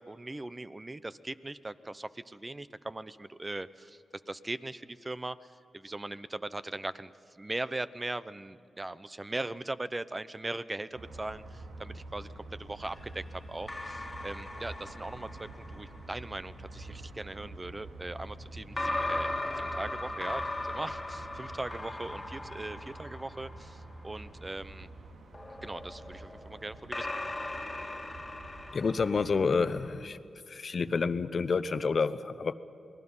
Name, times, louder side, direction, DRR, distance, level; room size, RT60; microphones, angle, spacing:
voice 1, 0.0-4.0 4.3-5.4 5.7-13.2 13.5-19.3 19.6-24.9 25.6-27.1, right 2 dB, 25° right, 14 dB, 0.8 m, -39 dB
sound 1, 10.9-29.9, right 2 dB, 85° right, 2.1 m, -47 dB
sound 2, 12.8-16.2 18.8-24.2 25.3-30.0, left 2 dB, 20° left, 2.0 m, -38 dB
voice 2, 28.7-30.2 30.5-32.5, left 4 dB, 55° left, 13 dB, 0.9 m, -29 dB
28.0 x 19.5 x 5.6 m, 2.8 s
cardioid pair, 65°, 0 cm